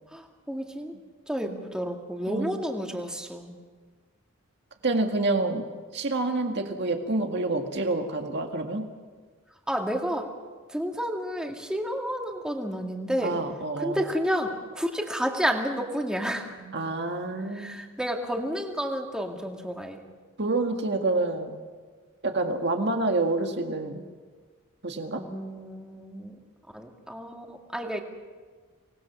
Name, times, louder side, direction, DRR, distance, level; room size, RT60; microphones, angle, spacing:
voice 1, 0.1-0.9 1.3-3.6 9.7-10.3 10.7-13.4 13.8-16.6 17.5-20.0 25.2-26.4 26.7-28.0, equal, 5° right, 2 dB, 2.0 m, -31 dB
voice 2, 4.8-5.7 5.9-8.9 13.2-14.0 16.6-17.8 20.4-21.6 22.2-24.0 24.8-25.2, right 2 dB, 55° right, 4 dB, 1.8 m, -28 dB
25.0 x 19.5 x 6.1 m, 1.5 s
head